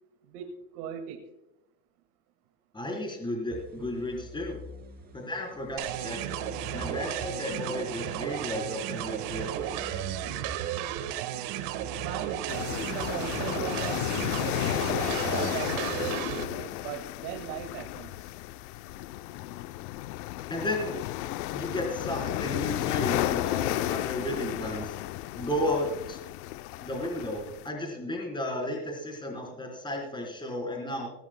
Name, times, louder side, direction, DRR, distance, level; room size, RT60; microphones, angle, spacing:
voice 1, 0.3-1.3 12.0-18.3, right 8 dB, 90° right, 3 dB, 2.1 m, -40 dB
voice 2, 2.7-4.6 5.1-6.4 6.7-9.5 20.5-21.0 21.5-25.0 25.3-26.2 26.8-31.1, left 1 dB, 10° left, -1 dB, 3.9 m, -33 dB
sound 1, 3.5-15.4, right 1 dB, 20° right, 4.1 m, -46 dB
sound 2, 5.8-16.4, right 12 dB, 70° right, 1.6 m, -34 dB
sound 3, 12.5-27.7, left 16 dB, 85° left, 0.7 m, -33 dB
18.5 x 18.0 x 2.2 m, 0.89 s
cardioid pair, 140°, 44 cm